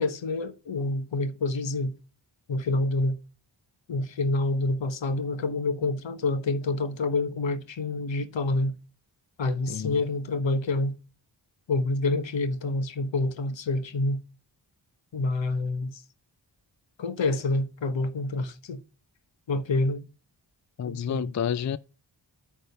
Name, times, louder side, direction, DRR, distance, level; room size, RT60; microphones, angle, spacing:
voice 1, 0.0-2.0 2.5-3.2 3.9-8.8 9.4-11.0 11.7-14.2 15.1-16.0 17.0-18.8 19.5-20.1 20.9-21.3, left 2 dB, 75° left, 1.1 m, -27 dB
voice 2, 9.7-10.0 20.8-21.8, left 8 dB, 40° left, 0.5 m, -29 dB
9.3 x 3.6 x 6.6 m
cardioid pair, 50°, 45 cm